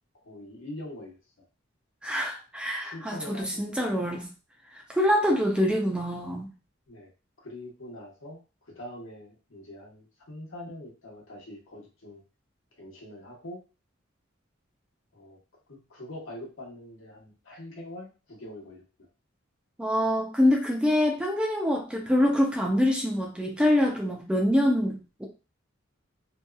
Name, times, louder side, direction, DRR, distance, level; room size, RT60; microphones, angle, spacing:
voice 1, 0.2-1.4 2.8-3.6 6.9-7.1 7.4-8.4 8.7-12.2 12.8-13.6 15.1-15.4 15.7-18.8, left 1 dB, 70° left, -2 dB, 1.0 m, -43 dB
voice 2, 2.0-4.3 4.9-6.5 19.8-25.3, left 1 dB, 5° right, 0 dB, 0.4 m, -25 dB
2.7 x 2.3 x 2.2 m, 0.32 s
head